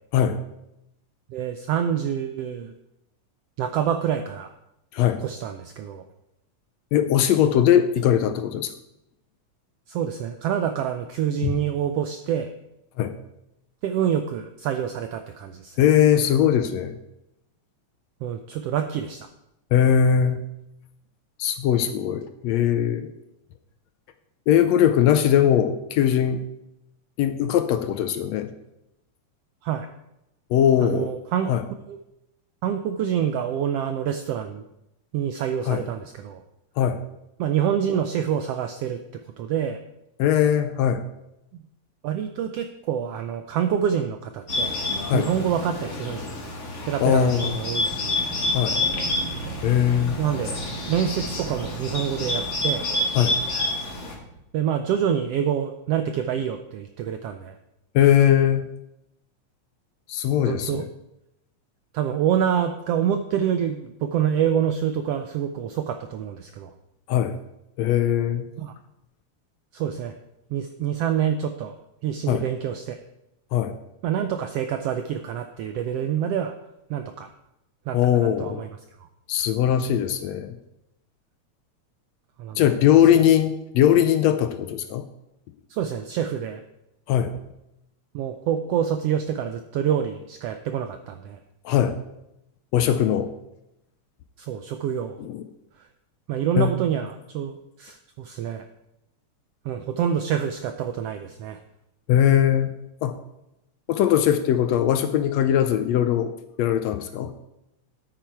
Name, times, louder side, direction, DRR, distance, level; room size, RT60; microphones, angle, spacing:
voice 1, 1.3-2.7 3.6-4.5 5.2-6.0 9.9-12.5 13.8-15.8 18.2-19.3 29.6-29.9 30.8-31.5 31.9-32.0 32.6-34.6 35.1-36.4 37.4-39.0 39.4-39.8 41.5-41.6 42.0-44.7 45.1-46.3 46.9-48.2 50.2-50.6 50.9-52.8 54.5-57.5 60.4-60.9 61.9-66.7 68.6-68.7 69.7-70.1 70.5-71.8 72.0-73.0 74.0-76.5 76.9-77.3 77.9-78.7 82.4-82.6 85.7-86.6 88.1-91.4 94.4-95.2 96.3-98.6 99.6-101.6, right 9 dB, 80° right, 7 dB, 1.4 m, -26 dB
voice 2, 6.9-8.7 11.4-11.5 13.0-13.1 15.8-17.0 19.7-20.4 21.4-23.1 24.5-26.4 27.2-28.5 30.5-31.1 31.5-31.6 35.7-35.8 36.8-37.0 40.2-41.0 45.1-45.3 47.0-47.6 48.5-48.8 49.6-50.2 53.1-53.4 57.9-58.6 60.1-60.8 67.1-67.4 67.8-68.5 72.3-72.4 73.5-73.7 77.9-78.6 79.3-80.6 82.6-85.1 87.1-87.3 91.6-91.9 92.7-93.3 95.2-95.4 96.5-96.8 102.1-102.7 103.0-103.2 103.9-106.3 106.6-107.3, left 10 dB, 75° left, 9 dB, 1.7 m, -20 dB
Bird, 44.5-54.1, left 2 dB, 35° left, 1.2 m, -28 dB
Wind, 47.5-54.5, right 5 dB, 65° right, 1.2 m, -38 dB
10.5 x 8.8 x 4.6 m, 0.87 s
omnidirectional pair, 3.4 m